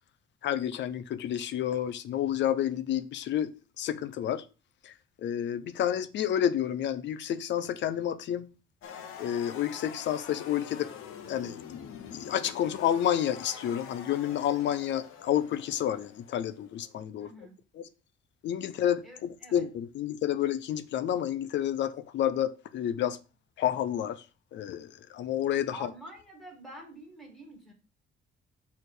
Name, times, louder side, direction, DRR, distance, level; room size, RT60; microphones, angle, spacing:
voice 1, 0.4-4.4 4.8-4.9 5.2-8.5 9.2-10.9 11.3-11.6 12.1-17.3 17.8-17.9 18.4-23.2 23.6-24.2 24.5-25.9, left 10 dB, 60° left, 0.7 m, -30 dB
sound 1, 8.8-17.0, left 7 dB, 85° left, 1.1 m, -45 dB
voice 2, 17.2-17.6 19.0-19.7 25.7-27.7, equal, ahead, 2.0 m, -47 dB
6.7 x 3.6 x 6.3 m
cardioid pair, 170°, 21 cm